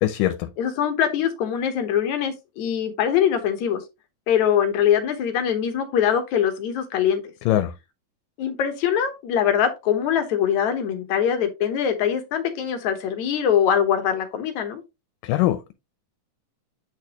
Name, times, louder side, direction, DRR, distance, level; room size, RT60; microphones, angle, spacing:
voice 1, 0.0-0.5 7.5-7.7 15.2-15.7, left 14 dB, 90° left, 2.3 m, -22 dB
voice 2, 0.6-3.8 4.3-7.2 8.4-14.8, left 8 dB, 65° left, 2.3 m, -23 dB
8.5 x 4.6 x 2.9 m
omnidirectional pair, 3.8 m